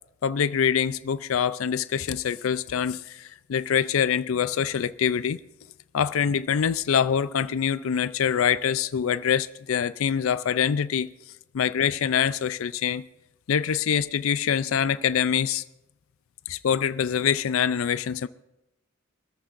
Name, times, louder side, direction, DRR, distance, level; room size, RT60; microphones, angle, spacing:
voice 1, 0.2-5.4 5.9-11.1 11.5-13.0 13.5-15.6 16.5-18.3, left 8 dB, 80° left, 0.4 m, -25 dB
26.0 x 13.5 x 2.5 m
head